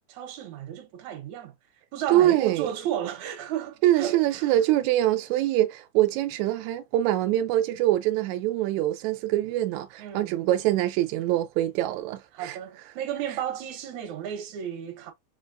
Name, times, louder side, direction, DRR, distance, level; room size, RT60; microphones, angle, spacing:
voice 1, 0.1-1.5 1.9-4.5 10.0-10.3 12.3-15.1, right 10 dB, 70° right, 2.0 m, -33 dB
voice 2, 2.1-2.7 3.8-12.6, right 14 dB, 90° right, 1.6 m, -24 dB
5.1 x 3.4 x 2.6 m
omnidirectional pair, 3.9 m